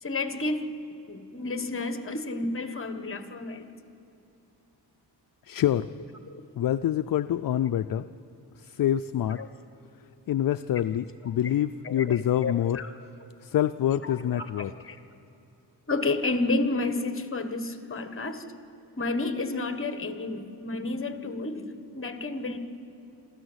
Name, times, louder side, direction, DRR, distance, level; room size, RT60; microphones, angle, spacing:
voice 1, 0.0-0.7 1.1-3.7 6.3-6.4 9.4-9.5 11.8-12.2 12.4-12.9 14.0-15.0 15.9-18.4 19.0-21.7 21.9-22.6, left 2 dB, 30° left, 8 dB, 1.4 m, -31 dB
voice 2, 5.5-5.9 6.6-8.1 8.6-9.4 10.3-12.8 13.4-14.7, left 11 dB, 55° left, 11 dB, 0.5 m, -26 dB
27.5 x 13.5 x 8.0 m, 2.8 s
wide cardioid pair, 115°, 41 cm